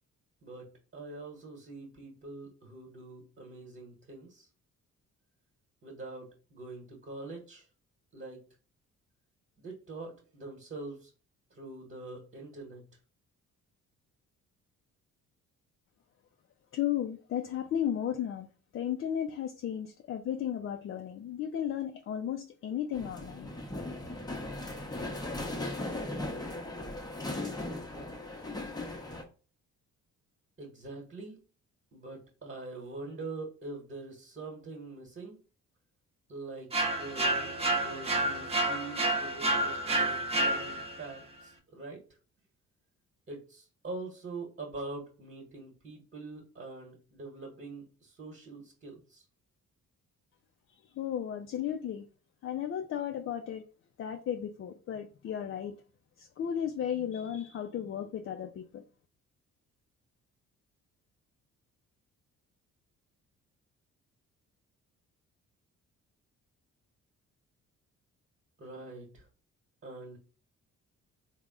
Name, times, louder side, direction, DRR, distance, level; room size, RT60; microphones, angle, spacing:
voice 1, 0.4-4.5 5.8-7.7 8.1-8.4 9.6-11.1 11.5-12.9 30.6-31.4 31.9-35.4 36.3-42.0 43.3-49.2 68.6-69.3 69.8-70.2, right 3 dB, 35° right, -1 dB, 1.2 m, -44 dB
voice 2, 16.7-18.5 18.7-23.5 50.7-52.1 52.4-53.6 54.0-55.7 56.2-58.8, left 9 dB, 45° left, 5 dB, 0.4 m, -34 dB
sound 1, 22.9-29.2, left 2 dB, 15° left, 0.7 m, -38 dB
sound 2, 36.7-41.1, right 1 dB, 20° right, 0.7 m, -29 dB
3.4 x 2.1 x 3.6 m, 0.37 s
cardioid pair, 90°, 30 cm